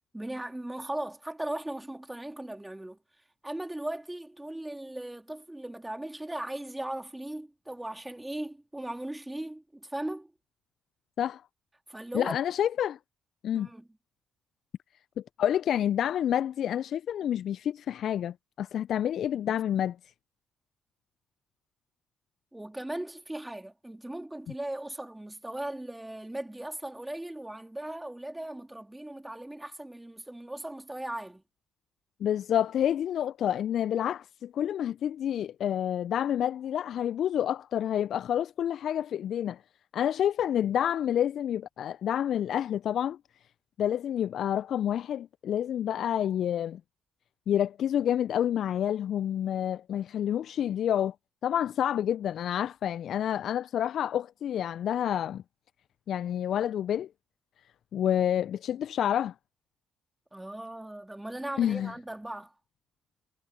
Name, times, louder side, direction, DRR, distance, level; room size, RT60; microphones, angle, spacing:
voice 1, 0.1-3.0 3.4-10.3 11.9-12.4 13.5-13.9 22.5-31.4 60.3-62.5, right 1 dB, 10° right, 3.5 m, -38 dB
voice 2, 12.1-13.0 13.4-13.7 15.4-20.0 32.2-39.6 39.9-43.2 43.8-46.8 47.5-51.1 51.4-55.4 56.1-57.1 57.9-59.3 61.6-61.9, left 10 dB, 60° left, 0.7 m, -28 dB
hypercardioid pair, 45°, 0 cm